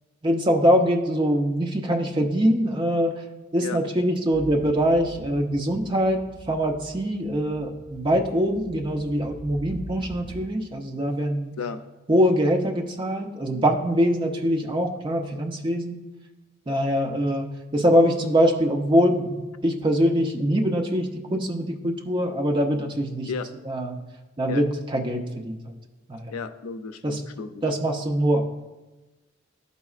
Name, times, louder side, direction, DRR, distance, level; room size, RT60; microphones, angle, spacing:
voice 1, 0.2-3.1 3.5-6.2 6.5-11.5 12.1-16.0 16.7-17.5 17.7-23.3 23.7-24.0 24.4-25.7 26.1-26.3 27.0-27.2 27.6-28.4, equal, 20° right, 1 dB, 0.6 m, -23 dB
sound 1, 4.3-10.7, equal, 25° left, 1.5 m, -43 dB
voice 2, 26.3-27.6, left 5 dB, 85° left, 10 dB, 0.4 m, -33 dB
12.0 x 4.1 x 2.4 m, 1.1 s
head